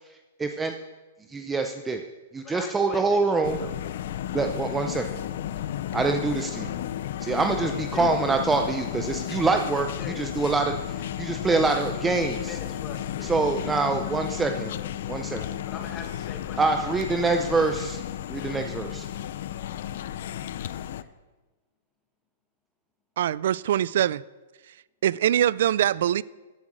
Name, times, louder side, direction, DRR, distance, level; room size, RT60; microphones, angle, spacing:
voice 1, 0.4-0.7 1.3-2.0 2.3-3.6 4.3-5.0 5.9-6.8 7.2-9.9 10.2-10.7 11.2-12.5 13.2-14.7 15.1-15.4 16.6-18.0 18.3-19.0, right 3 dB, 10° right, 0.6 m, -25 dB
voice 2, 2.4-3.7 7.6-8.1 10.0-10.2 11.3-13.4 15.7-17.3, left 5 dB, 25° left, 1.7 m, -42 dB
sound 1, 3.4-21.0, left 11 dB, 65° left, 0.6 m, -33 dB
voice 3, 23.2-24.2 25.0-26.2, right 11 dB, 65° right, 0.4 m, -23 dB
14.0 x 7.7 x 6.2 m
hypercardioid pair, 145°, 0 cm